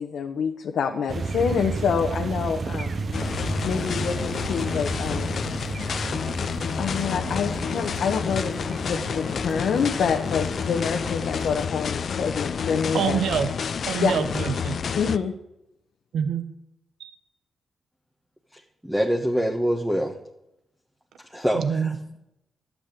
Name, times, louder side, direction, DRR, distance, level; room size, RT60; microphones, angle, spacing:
voice 1, 0.0-3.1 3.6-5.3 6.8-13.2 14.0-14.1 14.9-15.3, left 6 dB, 80° left, 3 dB, 1.1 m, -27 dB
sound 1, 1.1-11.7, right 4 dB, 50° right, 1.1 m, -33 dB
sound 2, 3.1-15.2, left 6 dB, 60° left, 0.6 m, -29 dB
voice 2, 12.9-13.5 13.9-14.8 16.1-16.5 17.0-17.1 21.5-21.9, right 7 dB, 85° right, 9 dB, 1.1 m, -25 dB
voice 3, 18.8-20.1 21.3-22.0, equal, 5° right, 1 dB, 1.4 m, -24 dB
12.0 x 8.6 x 8.3 m, 0.84 s
cardioid pair, 85°, 0 cm